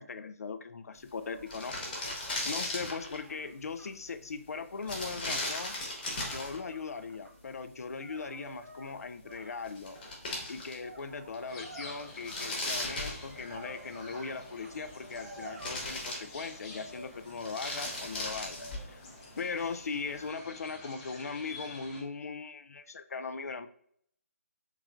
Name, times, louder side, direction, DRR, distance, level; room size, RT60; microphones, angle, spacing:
voice 1, 0.0-2.1 2.4-5.8 6.2-10.0 10.5-23.7, left 4 dB, 75° left, 10 dB, 0.3 m, -39 dB
sound 1, 1.1-1.2 1.4-3.3 4.8-6.6 9.3-9.4 9.6-11.0 11.3-11.4 12.0-13.8 14.7-15.3 15.6-16.7 17.3-18.9, left 2 dB, 35° left, 1.1 m, -37 dB
sound 2, 1.2-3.9 4.6-7.3 7.9-10.0 10.6-12.4 13.4-14.4 14.6-14.7 15.2-15.7, right 3 dB, 80° right, 0.6 m, -51 dB
sound 3, 11.5-22.0, left 2 dB, 20° left, 0.6 m, -49 dB
3.5 x 3.1 x 2.4 m, 0.67 s
figure-of-eight pair, 155°, 8 cm